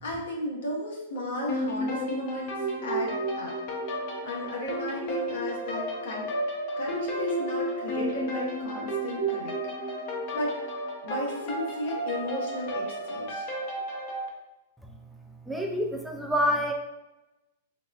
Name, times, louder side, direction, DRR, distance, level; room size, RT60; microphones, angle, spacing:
voice 1, 0.0-3.5 4.2-6.3 6.8-9.5 10.3-10.5 11.0-13.5, left 1 dB, 70° left, -3 dB, 1.1 m, -35 dB
sound 1, 1.5-14.3, right 1 dB, 50° left, 0.7 m, -32 dB
voice 2, 15.5-16.7, equal, ahead, 1 dB, 0.3 m, -27 dB
4.0 x 2.3 x 2.4 m, 0.99 s
hypercardioid pair, 115°, 0 cm